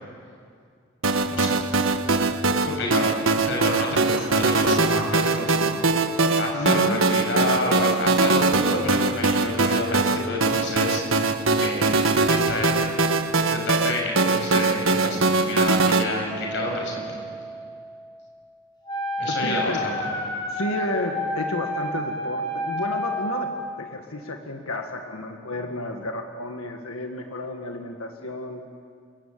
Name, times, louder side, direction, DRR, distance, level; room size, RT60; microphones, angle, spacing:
sound 1, 1.0-16.0, right 3 dB, 75° right, 1.5 m, -22 dB
voice 1, 2.6-3.2 3.5-5.8 6.4-11.0 11.6-12.9 13.4-17.2 19.2-20.1, left 2 dB, 55° left, 1 dB, 6.8 m, -29 dB
voice 2, 3.9-4.5 6.5-7.2 19.3-19.8 20.5-28.6, left 1 dB, 85° left, 4 dB, 1.8 m, -32 dB
Keyboard (musical), 16.3-18.8, right 2 dB, 20° right, 6.6 m, -38 dB
Wind instrument woodwind instrument, 18.8-23.6, left 1 dB, 20° left, 4.5 m, -29 dB
28.5 x 22.5 x 8.7 m, 2.2 s
head